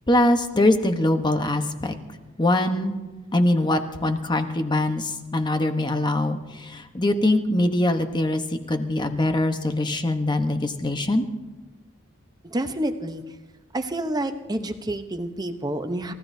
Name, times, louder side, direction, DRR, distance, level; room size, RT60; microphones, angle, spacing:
voice 1, 0.1-1.9 2.4-3.0 3.3-8.4 8.7-11.2, left 1 dB, 20° left, 7 dB, 1.0 m, -22 dB
voice 2, 12.5-13.2 13.7-16.1, right 1 dB, 20° right, 7 dB, 0.8 m, -28 dB
29.0 x 15.0 x 2.7 m, 1.2 s
head